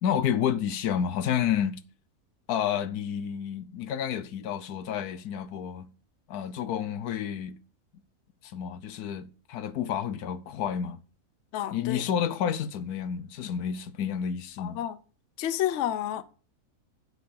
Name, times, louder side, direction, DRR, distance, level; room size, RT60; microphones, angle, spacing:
voice 1, 0.0-1.8 2.5-5.9 6.3-7.6 8.4-11.0 11.7-14.8, left 9 dB, 80° left, 1.2 m, -30 dB
voice 2, 11.5-12.0 14.6-15.0 15.4-16.2, left 11 dB, 60° left, 0.9 m, -30 dB
8.2 x 6.1 x 6.9 m
omnidirectional pair, 1.6 m